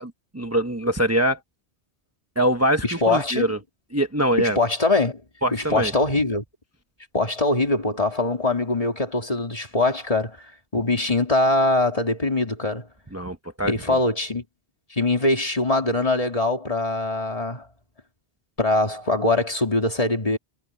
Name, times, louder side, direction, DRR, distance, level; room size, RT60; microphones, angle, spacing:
voice 1, 0.0-1.4 2.4-3.6 3.9-4.6 5.4-5.9 13.1-14.0, right 1 dB, 15° right, 1.0 m, -23 dB
voice 2, 2.8-3.6 4.4-5.2 5.5-6.4 7.1-10.5 10.7-12.9 13.7-14.4 14.9-17.7 18.6-20.4, left 2 dB, 30° left, 2.6 m, -22 dB
omnidirectional pair, 1.1 m